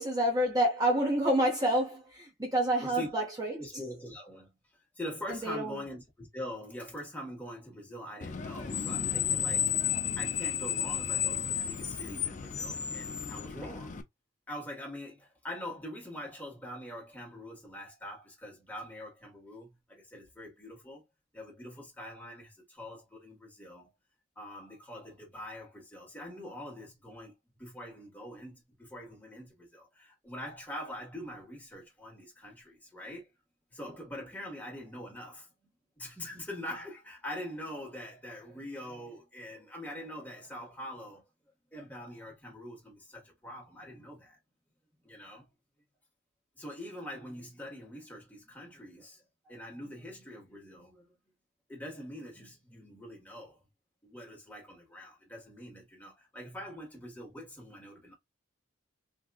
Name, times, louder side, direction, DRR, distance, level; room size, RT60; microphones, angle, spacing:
voice 1, 0.0-3.6 5.3-5.8, right 1 dB, 20° right, 0.8 m, -28 dB
voice 2, 2.8-3.1 3.6-9.6 10.2-14.0 14.5-21.0 21.3-23.9 24.3-27.3 27.6-33.3 33.7-35.5 36.0-41.2 41.7-44.4 45.0-45.5 46.6-51.2 51.7-53.6 54.0-58.1, left 1 dB, 10° left, 1.5 m, -44 dB
Screech, 8.2-14.0, left 9 dB, 40° left, 0.5 m, -32 dB
3.6 x 2.8 x 2.4 m
head